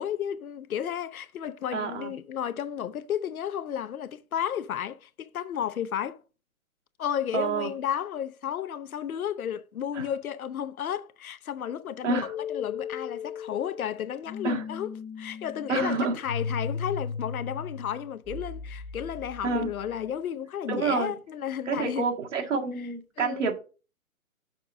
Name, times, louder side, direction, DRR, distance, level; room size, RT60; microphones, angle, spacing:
voice 1, 0.0-6.2 7.0-14.9 15.2-22.1 23.2-23.5, left 9 dB, 75° left, 0.7 m, -33 dB
voice 2, 1.7-2.1 7.3-7.7 10.0-10.1 12.0-12.3 14.4-14.6 15.7-16.2 19.4-19.7 20.7-21.2 21.7-23.5, right 4 dB, 55° right, 1.8 m, -28 dB
sound 1, 12.2-20.1, left 6 dB, 10° left, 0.9 m, -37 dB
6.5 x 4.6 x 5.0 m
hypercardioid pair, 160°, 43 cm